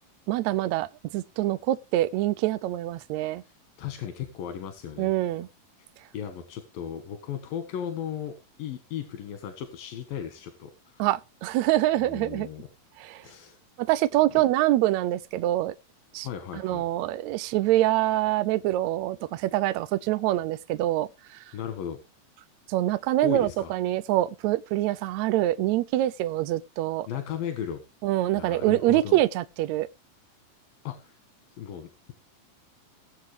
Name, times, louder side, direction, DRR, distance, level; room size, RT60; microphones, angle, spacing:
voice 1, 0.3-0.9 1.1-3.4 5.0-5.5 11.0-12.5 13.0-13.2 13.8-15.8 16.1-16.3 16.6-21.4 22.7-27.1 28.0-29.9, right 15 dB, 75° right, 1.7 m, -25 dB
voice 2, 3.8-5.1 5.8-5.9 6.1-11.1 12.0-12.7 13.2-13.6 14.3-14.4 16.2-16.8 21.5-22.0 23.2-23.7 27.1-27.8 28.3-29.2 30.8-31.2 31.6-32.1, left 9 dB, 90° left, 3.3 m, -36 dB
19.5 x 7.7 x 3.3 m
omnidirectional pair, 3.9 m